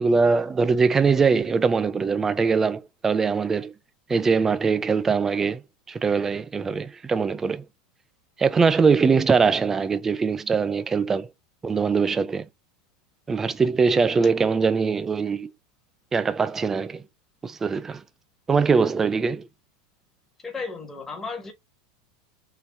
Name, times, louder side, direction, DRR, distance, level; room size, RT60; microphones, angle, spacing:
voice 1, 0.0-3.7 4.1-5.6 5.9-7.6 8.4-11.3 11.6-12.5 13.3-15.5 16.1-17.0 17.4-18.0 18.5-19.5, right 5 dB, 15° right, 0.4 m, -22 dB
voice 2, 20.4-21.5, left 4 dB, 15° left, 1.2 m, -34 dB
3.8 x 2.8 x 3.4 m
supercardioid pair, 135°, 2 cm